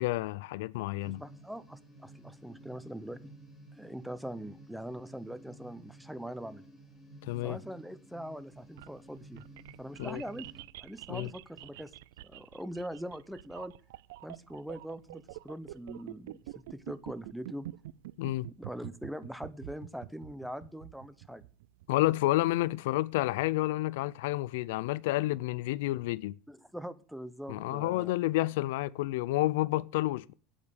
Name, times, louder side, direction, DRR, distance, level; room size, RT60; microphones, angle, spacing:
voice 1, 0.0-1.2 7.3-7.6 10.0-10.2 11.1-11.3 18.2-18.5 21.9-26.3 27.5-30.3, left 17 dB, 75° left, 0.4 m, -30 dB
sound 1, 1.0-10.6, right 1 dB, 15° left, 2.6 m, -54 dB
voice 2, 1.0-3.3 3.8-6.6 7.4-9.4 9.8-10.5 10.8-11.9 12.2-13.7 14.2-16.4 16.7-17.7 18.6-21.5 26.5-28.1, equal, ahead, 0.6 m, -42 dB
sound 2, 8.5-22.6, right 16 dB, 85° right, 0.4 m, -47 dB
8.9 x 8.6 x 6.3 m
supercardioid pair, 150°, 0 cm